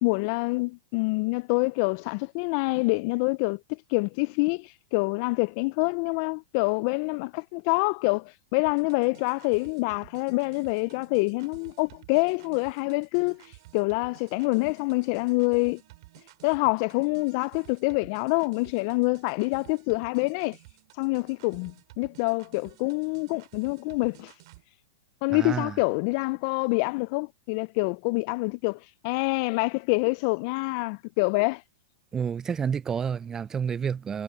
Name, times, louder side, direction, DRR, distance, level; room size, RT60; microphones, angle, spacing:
voice 1, 0.0-13.4 13.7-15.8 16.4-20.6 21.0-24.3 25.2-31.6, left 28 dB, 50° left, 0.5 m, -26 dB
sound 1, 8.6-24.6, right 21 dB, 55° right, 7.3 m, -53 dB
voice 2, 25.3-25.8 32.1-34.2, right 7 dB, 20° right, 0.5 m, -29 dB
hypercardioid pair, 130°, 3 cm